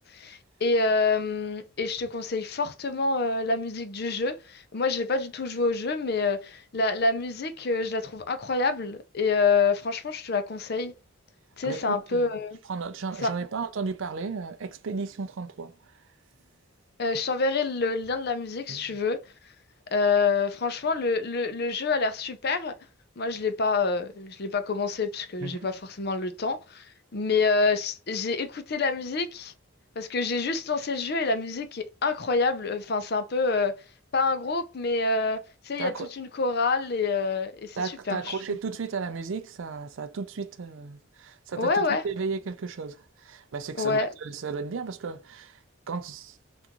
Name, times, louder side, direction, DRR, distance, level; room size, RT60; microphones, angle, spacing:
voice 1, 0.1-10.9 11.6-12.6 13.2-13.3 17.0-19.2 19.9-22.7 23.2-26.9 27.1-29.5 30.0-33.8 34.1-35.4 35.6-37.8 38.1-38.4 41.6-42.0 43.8-44.1, left 4 dB, 45° left, 0.5 m, -27 dB
voice 2, 11.6-12.4 12.7-15.8 18.7-19.0 25.4-25.7 35.8-36.1 37.8-45.6 45.9-46.4, right 4 dB, 65° right, 0.4 m, -34 dB
3.6 x 2.5 x 2.8 m
head